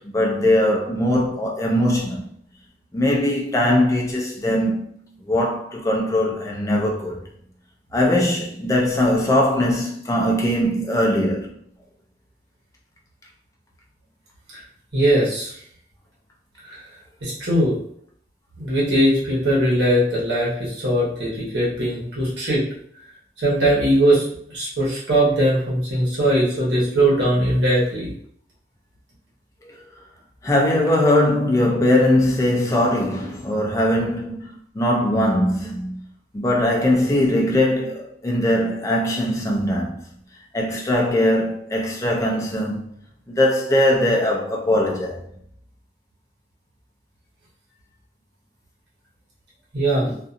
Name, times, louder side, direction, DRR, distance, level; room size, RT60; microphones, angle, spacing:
voice 1, 0.0-2.3 2.9-4.8 5.3-7.2 7.9-11.5 29.6-29.9 30.4-36.0 36.3-40.0 40.5-42.9 43.3-45.2, left 1 dB, 15° left, 0.5 m, -20 dB
voice 2, 14.9-15.5 16.7-16.8 17.2-17.7 18.6-22.6 23.4-24.2 24.5-28.1 49.7-50.2, right 1 dB, 75° right, 1.2 m, -20 dB
2.5 x 2.5 x 2.5 m
head